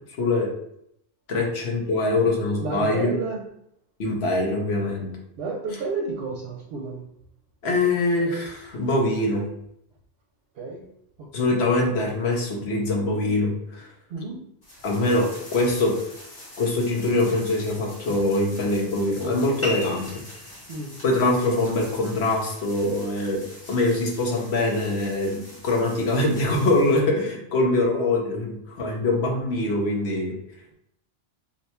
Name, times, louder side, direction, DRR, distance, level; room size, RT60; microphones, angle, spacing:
voice 1, 0.2-0.5 1.3-3.2 4.0-5.1 7.6-9.4 11.3-13.9 14.8-15.9 16.6-20.1 21.0-30.4, left 2 dB, 75° left, 0 dB, 1.0 m, -23 dB
voice 2, 2.6-3.4 5.4-7.1 10.6-10.9 11.2-11.5 14.1-14.4 20.7-20.9, right 3 dB, 70° right, 0 dB, 0.8 m, -31 dB
sound 1, 14.6-27.0, left 1 dB, 55° left, 1.4 m, -45 dB
sound 2, 19.6-24.7, left 1 dB, 20° left, 0.5 m, -39 dB
2.8 x 2.2 x 4.1 m, 0.74 s
omnidirectional pair, 1.1 m